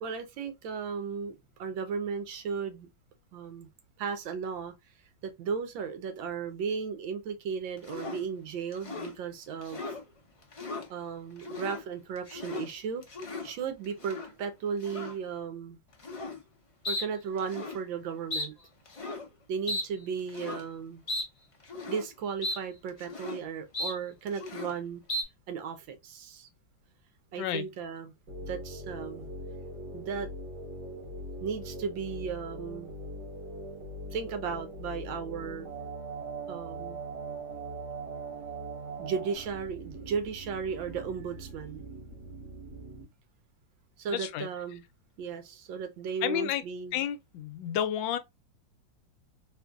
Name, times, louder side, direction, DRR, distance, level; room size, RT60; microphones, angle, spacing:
voice 1, 0.0-2.9 3.3-3.7 4.0-4.7 5.2-10.0 10.9-13.0 13.4-15.8 16.9-18.5 19.5-21.0 21.9-25.0 25.5-26.5 27.3-28.1 28.4-29.3 29.9-30.3 31.4-32.9 34.1-35.7 36.5-37.0 39.0-41.9 44.0-44.8 45.2-47.0, right 6 dB, 85° right, 1.6 m, -35 dB
sound 1, 7.8-8.2 8.7-9.1 9.6-10.0 10.4-10.9 11.4-11.8 12.2-12.7 13.0-13.5 14.0-14.3 14.8-15.2 16.0-16.4 16.8-17.1 17.4-17.8 18.3-18.5 18.9-19.3 19.7-19.9 20.3-20.6 21.1-21.3 21.6-22.1 22.4-22.6 22.9-23.4 23.7-24.0 24.3-24.7 25.1-25.2, left 2 dB, 55° left, 0.3 m, -36 dB
sound 2, 28.3-43.1, right 2 dB, 65° right, 2.0 m, -41 dB
voice 2, 44.1-44.5 46.2-46.6 46.9-48.2, left 10 dB, 85° left, 1.4 m, -31 dB
4.2 x 2.5 x 2.3 m
omnidirectional pair, 2.1 m